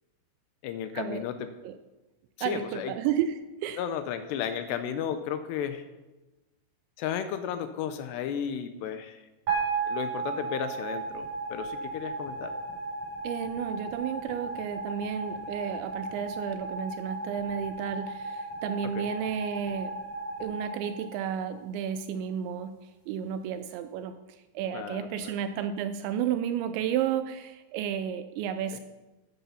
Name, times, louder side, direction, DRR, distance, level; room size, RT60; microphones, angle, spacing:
voice 1, 0.6-1.5 2.4-2.9 3.8-5.9 7.0-9.2 9.9-12.5 19.0-19.1 24.7-25.4 28.7-28.8, left 8 dB, 80° left, 9 dB, 2.6 m, -34 dB
voice 2, 2.4-3.8 13.2-19.9 20.4-22.8 23.1-24.2 24.5-28.8, right 9 dB, 85° right, 10 dB, 2.6 m, -32 dB
sound 1, 9.5-21.7, right 4 dB, 35° right, 5.8 m, -35 dB
13.5 x 9.5 x 5.8 m, 1.1 s
omnidirectional pair, 5.6 m